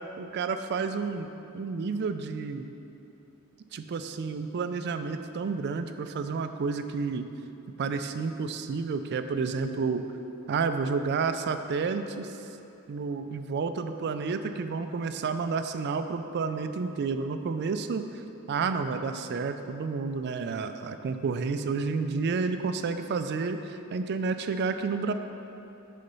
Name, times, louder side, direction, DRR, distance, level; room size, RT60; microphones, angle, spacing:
voice 1, 0.2-1.3 1.5-2.7 3.7-7.3 7.8-10.0 10.5-12.4 12.9-18.2 18.5-25.1, right 4 dB, 50° right, 9 dB, 0.3 m, -30 dB
6.7 x 4.2 x 5.4 m, 2.9 s
head